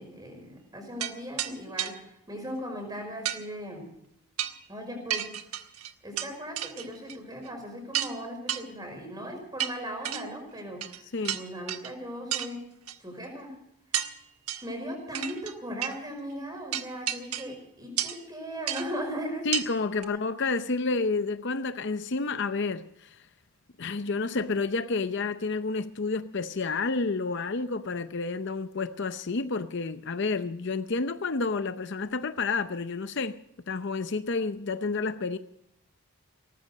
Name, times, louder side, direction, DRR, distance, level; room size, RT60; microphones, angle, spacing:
voice 1, 0.0-3.9 4.7-5.4 6.0-11.0 11.3-12.7 13.0-13.6 14.6-19.5 20.0-20.2, equal, 15° right, 5.4 m, -38 dB
sound 1, 1.0-1.1 1.4-1.5 1.8-1.9 3.2-3.4 4.4-4.6 5.1-6.3 6.6-7.1 7.4-7.5 7.9-8.1 8.5-8.6 9.6-10.2 10.8-11.0 11.2-11.9 12.3-12.5 12.9-13.0 13.9-14.1 14.5-14.7 15.1-15.5 15.8-16.0 16.7-17.6 18.0-18.2 18.7-18.9 19.5-19.7 20.0-20.1, right 11 dB, 80° right, 1.2 m, -31 dB
voice 2, 19.4-23.2 23.8-33.4 33.7-35.4, left 4 dB, 50° left, 0.6 m, -30 dB
18.5 x 14.5 x 5.1 m
head